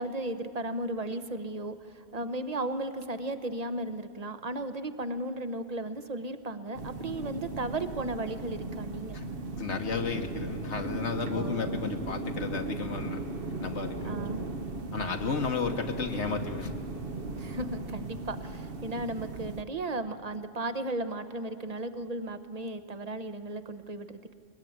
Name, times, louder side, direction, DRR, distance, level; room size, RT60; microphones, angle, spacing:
voice 1, 0.0-9.2 11.3-12.0 14.0-14.4 15.7-15.8 17.4-24.3, right 2 dB, 35° right, 10 dB, 1.1 m, -35 dB
sound 1, 6.7-19.6, right 3 dB, 55° right, 1.2 m, -37 dB
voice 2, 9.6-13.2 13.6-14.2 14.9-16.7, left 5 dB, 85° left, 3 dB, 1.6 m, -33 dB
21.5 x 20.0 x 9.4 m, 2.6 s
omnidirectional pair, 1.1 m